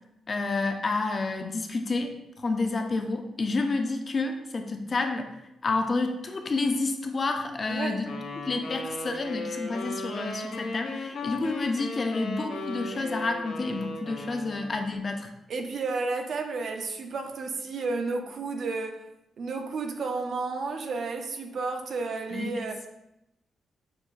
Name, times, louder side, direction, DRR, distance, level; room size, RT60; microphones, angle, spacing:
voice 1, 0.3-2.1 2.4-5.3 5.6-8.1 8.4-15.3 22.3-22.9, left 3 dB, 30° left, 5 dB, 0.3 m, -29 dB
voice 2, 7.7-8.0 15.5-19.0 19.4-22.8, right 3 dB, 55° right, 5 dB, 0.4 m, -32 dB
sound 1, 8.1-15.0, left 2 dB, 80° left, 0.6 m, -36 dB
5.8 x 2.3 x 2.3 m, 0.88 s
wide cardioid pair, 150°, 0 cm